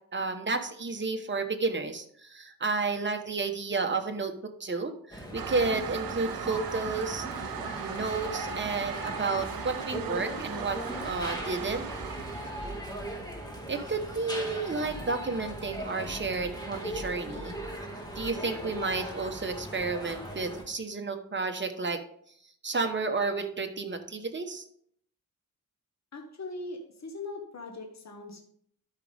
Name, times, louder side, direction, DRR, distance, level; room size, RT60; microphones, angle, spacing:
voice 1, 0.1-4.3 4.6-7.3 7.8-11.8 13.7-17.6 18.1-22.0 22.6-24.6, right 4 dB, 35° right, 5 dB, 1.1 m, -31 dB
sound 1, 5.1-20.6, equal, 10° left, 1.9 m, -38 dB
Toilet flush, 5.4-12.8, right 9 dB, 85° right, 0.6 m, -38 dB
voice 2, 26.1-28.5, left 3 dB, 50° left, 2 dB, 1.3 m, -40 dB
12.5 x 5.1 x 3.5 m, 0.65 s
wide cardioid pair, 90°, 34 cm